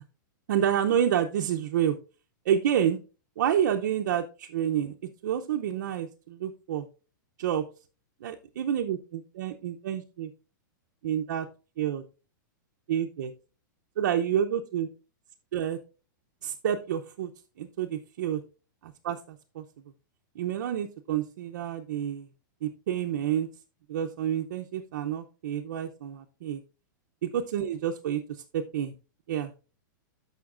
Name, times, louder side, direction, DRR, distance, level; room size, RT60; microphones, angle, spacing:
voice 1, 0.5-2.0 2.5-3.0 3.4-4.9 5.2-6.9 7.4-7.6 8.2-10.3 11.0-11.5 11.8-12.0 12.9-13.3 14.0-14.9 15.5-15.8 16.4-17.3 17.6-18.4 18.8-19.6 20.4-22.3 22.6-23.5 23.9-26.6 27.2-28.9 29.3-29.5, right 9 dB, 55° right, 2 dB, 0.6 m, -29 dB
13.0 x 5.7 x 2.5 m, 0.33 s
supercardioid pair, 175°, 11 cm